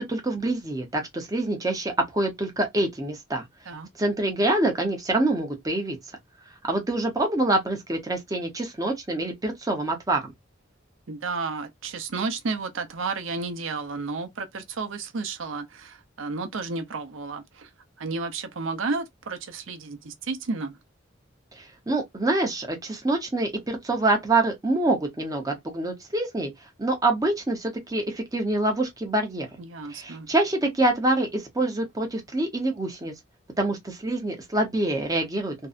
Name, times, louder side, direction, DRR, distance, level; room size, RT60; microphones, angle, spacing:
voice 1, 0.0-3.4 4.0-6.0 6.6-10.3 21.6-26.5 26.8-29.5 29.9-33.1 33.6-35.5, right 2 dB, 20° right, 0.7 m, -26 dB
voice 2, 11.1-17.7 18.0-20.8 29.6-30.3, right 4 dB, 80° right, 0.6 m, -32 dB
2.6 x 2.1 x 2.4 m
head